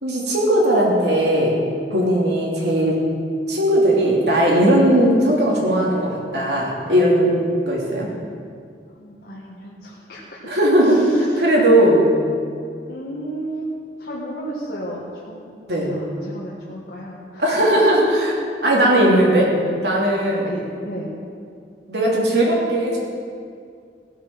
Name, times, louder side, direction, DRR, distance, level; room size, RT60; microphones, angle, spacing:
voice 1, 0.0-1.6 1.9-3.0 3.5-7.3 7.7-8.1 10.5-12.1 15.7-15.9 17.4-18.3 18.6-19.5 19.8-20.5 21.9-23.0, right 1 dB, 75° right, -3 dB, 3.0 m, -17 dB
voice 2, 9.0-10.4 10.8-11.5 12.8-13.7 14.0-17.4 20.4-21.1, right 1 dB, 65° left, -6 dB, 1.7 m, -34 dB
16.0 x 8.1 x 6.1 m, 2.3 s
head